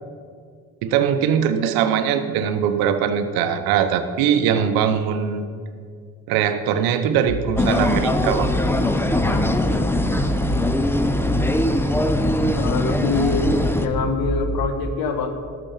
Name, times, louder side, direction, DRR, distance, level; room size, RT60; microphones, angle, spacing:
voice 1, 0.8-5.5 6.3-8.5, right 8 dB, 80° right, 10 dB, 0.8 m, -21 dB
sound 1, 7.3-14.7, equal, 25° left, 2.3 m, -28 dB
sound 2, 7.6-13.9, left 1 dB, 5° left, 0.9 m, -21 dB
voice 2, 9.3-10.1 12.5-15.3, left 4 dB, 75° left, 7 dB, 1.3 m, -25 dB
13.0 x 6.1 x 7.1 m, 2.1 s
hypercardioid pair, 55°, 36 cm